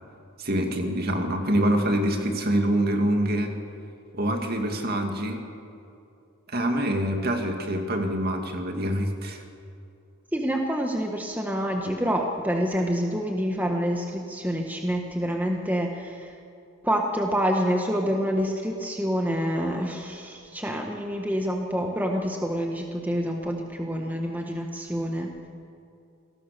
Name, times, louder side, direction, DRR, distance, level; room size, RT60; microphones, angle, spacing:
voice 1, 0.4-3.5 4.1-5.4 6.5-9.4, right 1 dB, 45° right, 4 dB, 2.4 m, -25 dB
voice 2, 10.3-16.3 16.8-25.3, equal, 5° right, 2 dB, 1.4 m, -27 dB
28.0 x 18.5 x 6.8 m, 2.6 s
head